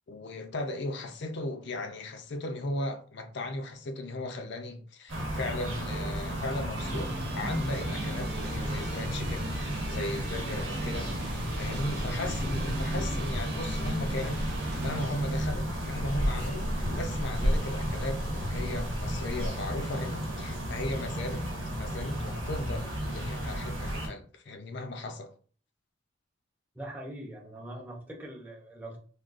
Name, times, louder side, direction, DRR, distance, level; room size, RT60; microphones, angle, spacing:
voice 1, 0.1-21.5 21.8-25.3, left 1 dB, 55° left, 0.4 m, -37 dB
sound 1, 5.1-24.1, equal, 75° right, 1.0 m, -34 dB
sound 2, 6.7-15.1, right 1 dB, 50° right, 0.5 m, -39 dB
sound 3, 8.2-19.5, equal, 35° right, 0.9 m, -35 dB
voice 2, 26.7-29.0, right 1 dB, 10° right, 0.6 m, -42 dB
3.6 x 2.3 x 2.4 m
head